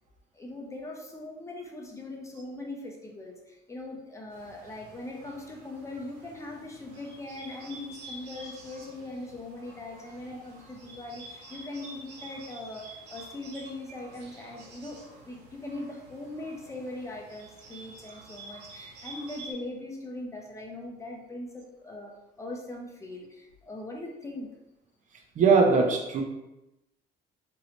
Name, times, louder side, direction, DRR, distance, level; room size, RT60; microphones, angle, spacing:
voice 1, 0.3-24.5, left 2 dB, 15° left, 0 dB, 0.6 m, -40 dB
Bird, 4.3-19.5, right 2 dB, 80° right, 0.8 m, -49 dB
voice 2, 25.4-26.2, right 4 dB, 50° right, 2 dB, 0.6 m, -20 dB
3.0 x 2.6 x 3.0 m, 0.94 s
cardioid pair, 110°, 17 cm